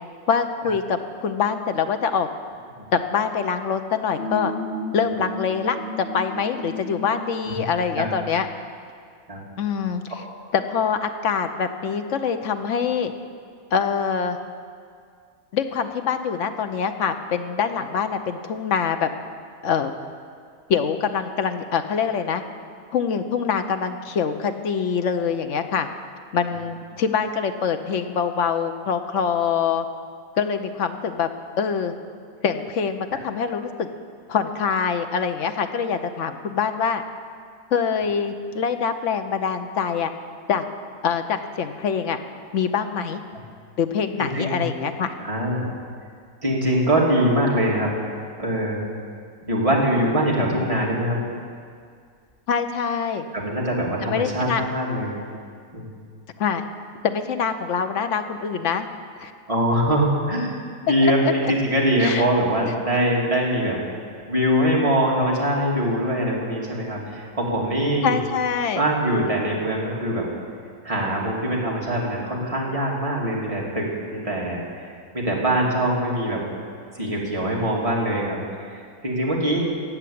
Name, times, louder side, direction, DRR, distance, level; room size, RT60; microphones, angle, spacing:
voice 1, 0.3-2.3 2.9-4.5 4.9-8.5 9.6-10.0 10.5-13.1 13.7-14.4 15.5-19.1 19.6-19.9 20.7-22.4 22.9-25.9 26.3-29.9 30.4-31.3 31.6-31.9 32.4-33.9 34.3-37.0 37.7-40.1 40.5-40.6 41.0-42.2 42.5-43.2 43.8-45.1 52.5-53.3 54.0-54.6 56.4-56.7 57.0-58.9 59.2-59.3 61.0-61.5 62.0-62.2 62.6-62.7 68.0-68.8, left 6 dB, 60° left, 8 dB, 1.1 m, -24 dB
sound 1, 4.2-7.3, left 1 dB, 40° left, 2.8 m, -33 dB
voice 2, 45.2-45.7 46.4-47.9 48.4-48.8 49.4-51.3 53.3-55.2 55.7-55.9 59.5-60.5 60.8-63.8 64.3-68.2 68.8-70.3 70.8-76.4 77.0-78.4 78.7-79.7, right 1 dB, 25° right, -4 dB, 2.5 m, -23 dB
14.0 x 8.3 x 8.6 m, 2.2 s
omnidirectional pair, 1.5 m